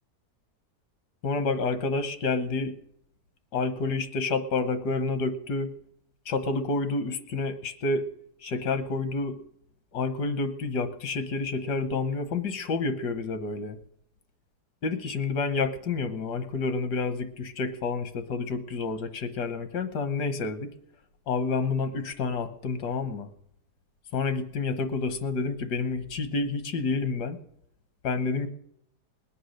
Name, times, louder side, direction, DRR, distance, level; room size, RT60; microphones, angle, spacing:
voice 1, 1.2-2.7 3.5-5.7 6.3-8.0 8.4-9.4 9.9-13.8 14.8-20.7 21.3-23.3 24.1-27.4 28.0-28.5, left 3 dB, 80° left, 10 dB, 1.7 m, -29 dB
20.0 x 8.7 x 6.5 m, 0.74 s
omnidirectional pair, 1.7 m